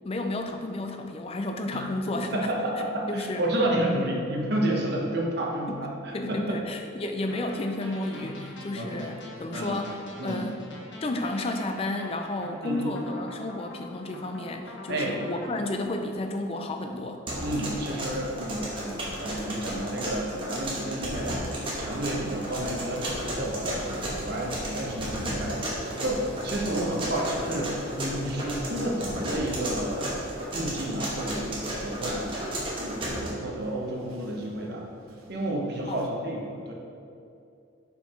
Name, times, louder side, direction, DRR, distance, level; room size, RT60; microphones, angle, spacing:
voice 1, 0.0-2.5 3.1-3.4 3.8-4.0 5.7-5.9 6.1-9.9 10.2-10.6 11.0-17.2 35.9-36.0, left 2 dB, 30° left, 5 dB, 0.4 m, -32 dB
voice 2, 2.3-6.4 8.2-8.3 8.8-9.1 9.5-9.8 10.2-10.4 12.6-12.9 14.9-15.2 17.4-32.4 32.8-34.8 35.3-36.7, right 1 dB, 50° right, -1 dB, 1.0 m, -31 dB
sound 1, 7.3-15.8, left 1 dB, 60° left, 0.9 m, -44 dB
sound 2, 17.3-33.3, right 1 dB, 25° right, 1.1 m, -33 dB
sound 3, 21.6-36.1, right 1 dB, 85° right, 0.7 m, -47 dB
5.5 x 4.5 x 4.3 m, 2.5 s
head